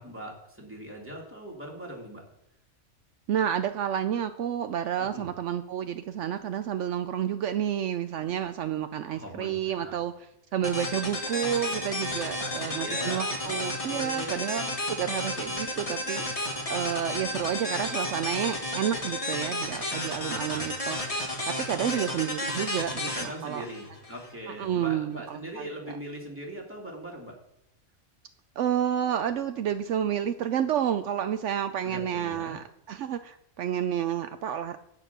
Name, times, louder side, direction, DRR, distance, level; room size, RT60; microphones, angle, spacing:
voice 1, 0.0-2.2 5.0-5.3 9.1-9.9 12.2-13.6 13.9-14.4 20.3-20.7 21.8-22.0 23.1-27.4 31.8-32.6, right 1 dB, 10° right, -2 dB, 2.7 m, -41 dB
voice 2, 3.3-10.1 10.5-21.0 21.2-23.7 24.5-25.7 28.6-34.8, right 9 dB, 75° right, 9 dB, 0.9 m, -30 dB
sound 1, 10.6-24.3, left 1 dB, 30° left, 1.9 m, -32 dB
9.2 x 8.9 x 6.0 m, 0.81 s
omnidirectional pair, 1.3 m